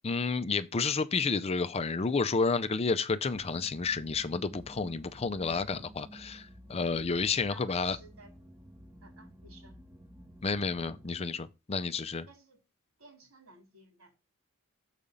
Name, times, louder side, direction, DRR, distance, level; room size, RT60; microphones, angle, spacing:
voice 1, 0.0-8.0 10.4-12.3, left 4 dB, 30° left, 0.5 m, -30 dB
sound 1, 3.3-11.3, equal, 15° right, 0.8 m, -52 dB
voice 2, 7.5-8.3 9.0-9.8 12.3-12.6 13.0-14.2, right 2 dB, 75° right, 3.6 m, -55 dB
7.0 x 4.9 x 5.2 m
head